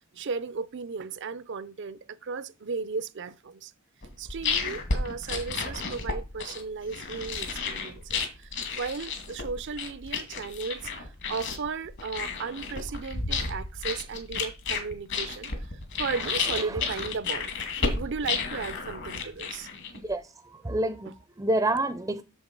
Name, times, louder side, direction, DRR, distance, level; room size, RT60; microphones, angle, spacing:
voice 1, 0.1-3.7 4.2-15.5 16.0-17.5 17.9-19.7 21.1-21.2, right 5 dB, 60° right, 0.6 m, -35 dB
sound 1, 4.0-20.1, left 4 dB, 60° left, 2.1 m, -32 dB
voice 2, 20.6-22.2, right 2 dB, 15° right, 0.5 m, -27 dB
7.1 x 6.9 x 5.2 m
head